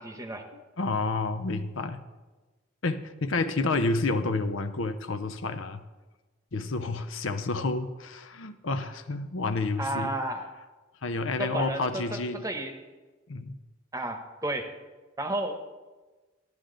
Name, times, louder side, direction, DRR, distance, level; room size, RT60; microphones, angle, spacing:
voice 1, 0.0-0.4 9.8-10.5 11.4-12.7 13.9-14.7 15.2-15.6, right 1 dB, 15° right, 6 dB, 0.9 m, -32 dB
voice 2, 0.5-2.0 2.8-5.8 6.5-10.1 11.0-12.4 13.3-13.6, left 3 dB, 85° left, 10 dB, 0.7 m, -30 dB
12.0 x 11.5 x 3.9 m, 1.2 s
head